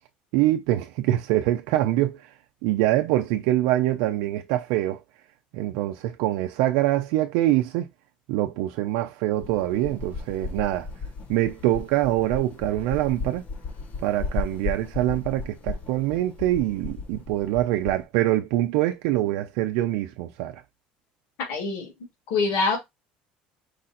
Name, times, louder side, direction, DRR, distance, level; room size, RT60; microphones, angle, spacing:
voice 1, 0.3-2.3 2.6-5.0 5.5-7.9 8.3-10.9 11.3-13.4 14.0-20.6, right 15 dB, 80° right, 0.5 m, -24 dB
sound 1, 9.3-18.0, left 4 dB, 40° left, 1.3 m, -35 dB
voice 2, 21.5-22.8, left 4 dB, 70° left, 2.3 m, -26 dB
4.8 x 2.5 x 4.2 m
supercardioid pair, 115°, 3 cm